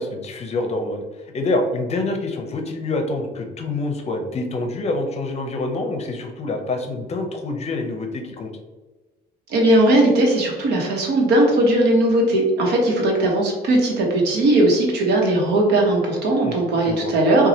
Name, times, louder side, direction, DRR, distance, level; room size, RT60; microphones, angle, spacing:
voice 1, 0.0-8.5 16.4-17.1, left 2 dB, 40° left, 4 dB, 0.6 m, -26 dB
voice 2, 9.5-17.5, right 1 dB, 80° right, 0 dB, 1.0 m, -18 dB
4.1 x 2.3 x 2.7 m, 1.2 s
cardioid pair, 110°, 17 cm